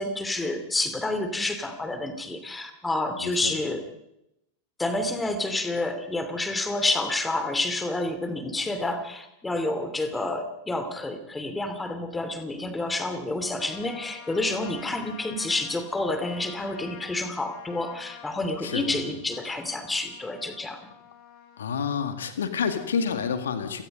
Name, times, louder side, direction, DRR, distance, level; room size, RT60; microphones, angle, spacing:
voice 1, 0.0-3.8 4.8-20.8, left 2 dB, 10° left, 9 dB, 2.9 m, -29 dB
voice 2, 3.2-3.5 18.6-19.0 21.6-23.8, left 6 dB, 65° left, 9 dB, 2.0 m, -28 dB
Trumpet, 13.4-22.1, left 9 dB, 40° left, 6.0 m, -48 dB
29.5 x 17.5 x 5.3 m, 0.84 s
figure-of-eight pair, 90°, 0 cm